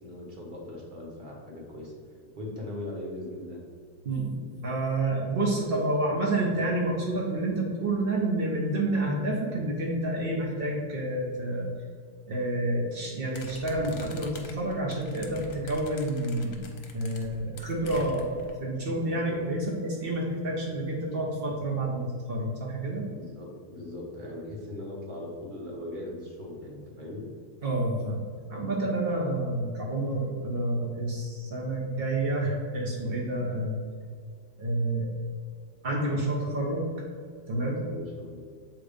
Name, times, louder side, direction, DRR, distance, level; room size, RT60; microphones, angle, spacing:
voice 1, 0.0-1.9 2.4-3.6 19.1-19.4 23.2-27.3 37.9-38.4, left 1 dB, 30° right, -2 dB, 0.9 m, -39 dB
voice 2, 4.0-11.7 12.3-23.1 27.6-33.8 34.6-35.1 35.8-36.9 37.5-37.9, right 1 dB, 80° right, -2 dB, 0.5 m, -29 dB
sound 1, 13.3-18.5, left 3 dB, 60° left, 1.2 m, -44 dB
7.6 x 3.0 x 5.0 m, 2.2 s
omnidirectional pair, 2.4 m